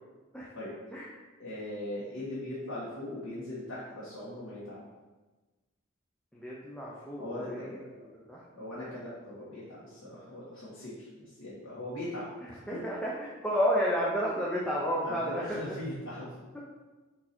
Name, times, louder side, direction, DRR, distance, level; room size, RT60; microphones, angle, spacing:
voice 1, 1.4-4.8 7.2-7.9 8.5-12.8 15.0-16.3, left 1 dB, 85° left, -9 dB, 1.7 m, -40 dB
voice 2, 6.3-7.9 8.3-8.4 12.4-13.1 13.4-15.6, equal, 5° left, -6 dB, 0.7 m, -31 dB
4.8 x 4.6 x 4.4 m, 1.2 s
head